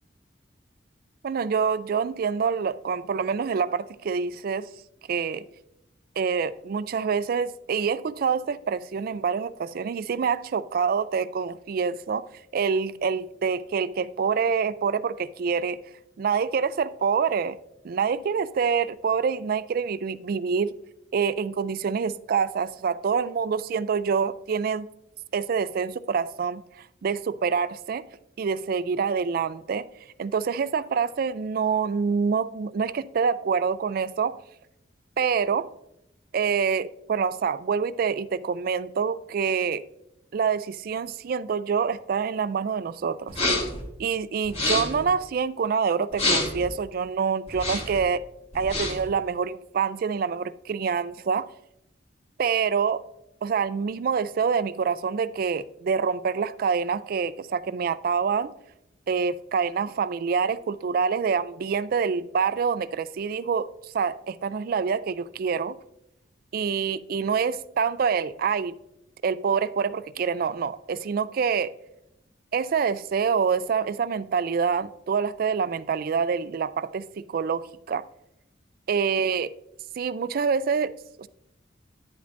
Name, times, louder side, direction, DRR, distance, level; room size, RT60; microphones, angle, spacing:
voice 1, 1.2-4.7 5.1-5.4 6.2-12.3 12.5-15.8 16.2-17.6 17.8-20.7 21.1-24.9 25.3-28.0 28.4-29.9 30.2-34.4 35.2-35.7 36.3-39.8 40.3-43.4 44.0-48.2 48.5-51.5 52.4-53.0 53.4-58.5 59.1-63.7 63.9-65.8 66.5-68.8 69.2-71.7 72.5-78.0 78.9-79.5 80.0-80.9 81.2-81.3, right 6 dB, 55° right, 0.3 m, -26 dB
sound 1, 43.3-43.8 44.4-45.0 46.1-46.7 47.5-48.0 48.5-49.1, left 2 dB, 35° left, 1.8 m, -27 dB
10.0 x 8.5 x 2.6 m
head